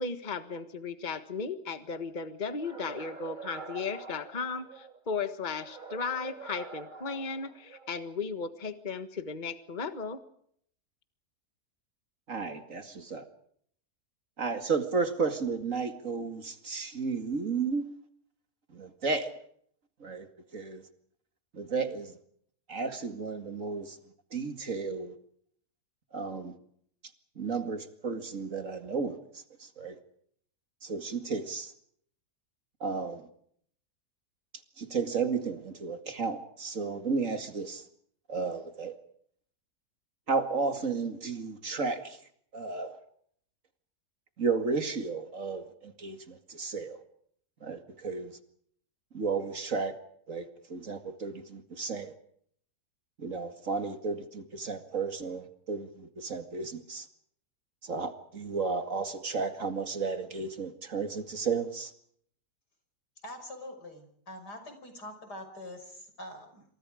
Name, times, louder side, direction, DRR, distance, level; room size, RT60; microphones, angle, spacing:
voice 1, 0.0-10.2, left 5 dB, 30° left, 10 dB, 1.6 m, -36 dB
sound 1, 2.6-5.0 5.6-8.0, right 4 dB, 30° right, 1.8 m, -45 dB
voice 2, 12.3-13.3 14.4-17.9 18.7-19.3 20.0-20.3 20.5-20.8 21.5-22.1 22.7-24.0 24.3-25.1 26.1-26.6 27.4-30.0 30.8-31.7 32.8-33.3 34.8-37.8 38.3-39.0 40.3-42.2 42.5-43.0 44.4-47.0 47.6-48.4 49.1-50.0 50.3-52.1 53.2-57.1 57.8-61.9, right 4 dB, 50° right, 8 dB, 2.5 m, -33 dB
voice 3, 63.2-66.6, left 1 dB, 85° left, 7 dB, 6.3 m, -44 dB
28.5 x 26.5 x 5.0 m, 0.66 s
omnidirectional pair, 1.7 m